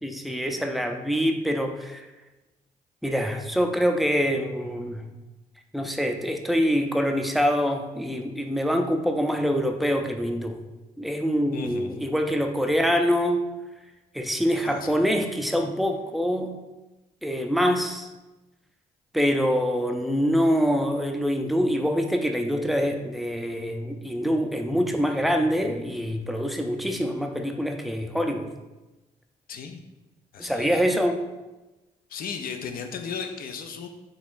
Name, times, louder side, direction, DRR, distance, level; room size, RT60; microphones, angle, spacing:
voice 1, 0.0-2.1 3.0-5.1 5.7-10.6 11.0-13.4 14.1-16.6 17.2-18.1 19.1-28.5 30.4-31.2, equal, ahead, 4 dB, 0.5 m, -25 dB
voice 2, 11.5-11.9 14.6-14.9 29.5-29.8 30.3-30.7 32.1-33.9, left 6 dB, 60° left, 6 dB, 0.5 m, -35 dB
3.9 x 2.9 x 2.5 m, 1.1 s
supercardioid pair, 55°, 16 cm